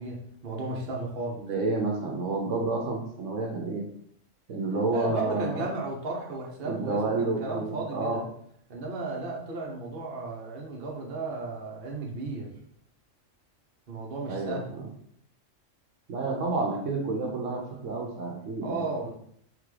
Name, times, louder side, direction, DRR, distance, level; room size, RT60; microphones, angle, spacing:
voice 1, 0.0-1.4 4.9-8.2 8.7-12.5 13.9-14.7 18.6-19.1, right 3 dB, 50° right, -1 dB, 1.0 m, -34 dB
voice 2, 1.4-3.8 4.5-5.7 6.6-8.2 14.3-14.9 16.1-18.8, right 3 dB, 75° right, 0 dB, 1.1 m, -30 dB
3.7 x 3.6 x 3.3 m, 0.68 s
omnidirectional pair, 1.3 m